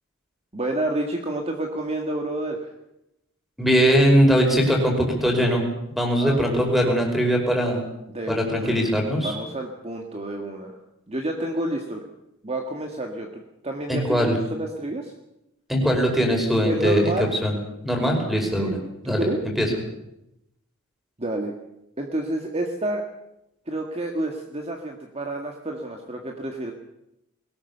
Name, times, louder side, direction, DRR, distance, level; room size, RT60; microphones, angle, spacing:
voice 1, 0.5-2.7 6.2-6.6 8.1-8.8 9.2-10.8 11.1-12.0 12.4-15.1 16.7-17.3 18.6-18.8 19.0-19.4 21.2-21.5 22.0-23.0 23.7-26.7, right 1 dB, 30° right, 2 dB, 1.8 m, -29 dB
voice 2, 3.6-5.6 5.9-7.8 8.3-9.3 13.9-14.3 15.7-17.1 17.4-17.5 17.8-18.8 19.1-19.3 19.6-19.7, equal, ahead, 1 dB, 5.2 m, -21 dB
22.0 x 18.5 x 6.9 m, 0.85 s
head